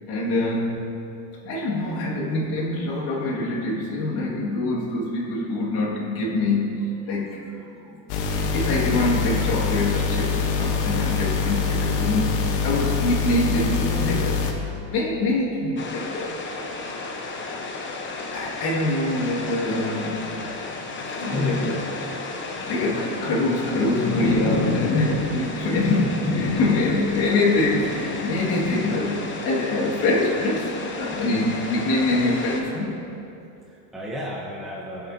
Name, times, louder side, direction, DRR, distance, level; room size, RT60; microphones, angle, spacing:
voice 1, 0.1-0.9 1.4-7.4 7.9-8.0 8.3-14.4 14.7-16.5 18.3-20.4 21.2-21.7 22.6-32.9, left 2 dB, 50° left, -3 dB, 2.2 m, -25 dB
voice 2, 7.4-8.4 21.0-21.8 22.6-22.8 25.3-26.1 29.7-30.0 33.7-35.1, left 2 dB, ahead, -5 dB, 1.2 m, -34 dB
sound 1, 8.1-14.5, left 5 dB, 70° left, 1.3 m, -24 dB
sound 2, 15.8-32.6, left 3 dB, 25° left, 1.0 m, -31 dB
16.0 x 7.6 x 2.8 m, 2.7 s
supercardioid pair, 130°, 48 cm